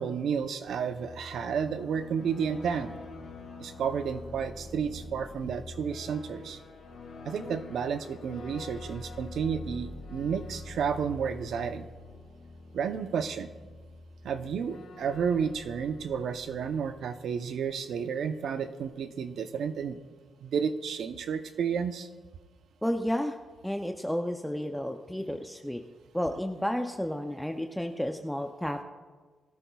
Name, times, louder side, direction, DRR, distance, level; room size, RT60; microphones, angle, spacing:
voice 1, 0.0-2.9 3.6-6.6 7.2-11.9 12.7-13.5 14.2-20.0 20.4-22.1, right 7 dB, 70° right, 9 dB, 0.7 m, -31 dB
sound 1, 0.6-17.3, left 3 dB, 85° left, 2.5 m, -45 dB
voice 2, 22.8-23.4 23.6-25.8 26.1-28.8, equal, 5° left, 5 dB, 0.5 m, -31 dB
18.5 x 13.0 x 2.3 m, 1.4 s
cardioid pair, 120°, 0 cm